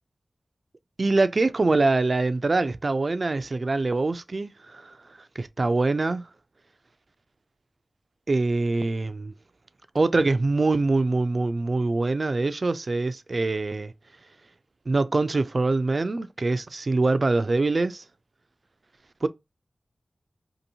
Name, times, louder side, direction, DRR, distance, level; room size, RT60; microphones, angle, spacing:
voice 1, 1.0-5.0 5.4-6.2 8.3-9.3 9.9-13.9 14.9-18.0 19.2-19.3, right 3 dB, 60° right, 0.3 m, -24 dB
2.8 x 2.6 x 2.6 m
cardioid pair, 45°, 0 cm